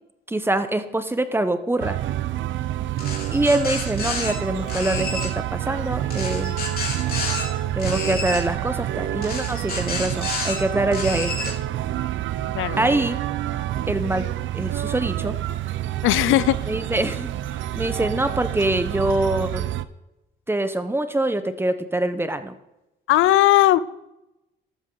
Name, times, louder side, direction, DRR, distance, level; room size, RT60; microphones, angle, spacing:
voice 1, 0.3-2.0 3.3-6.6 7.7-11.5 12.8-13.2 13.9-14.2 14.5-15.3 16.7-17.3 17.8-19.6 20.5-22.5, right 1 dB, 10° right, 10 dB, 1.1 m, -24 dB
sound 1, 1.8-19.8, right 13 dB, 75° right, 0.7 m, -28 dB
sound 2, 3.0-4.3 4.7-5.3 6.1-7.4 7.8-8.4 9.2-10.6 10.9-11.5, left 4 dB, 50° left, 3.7 m, -30 dB
voice 2, 16.0-16.6 23.1-23.8, left 15 dB, 85° left, 17 dB, 0.5 m, -17 dB
13.5 x 12.0 x 4.0 m, 0.92 s
cardioid pair, 90°, 20 cm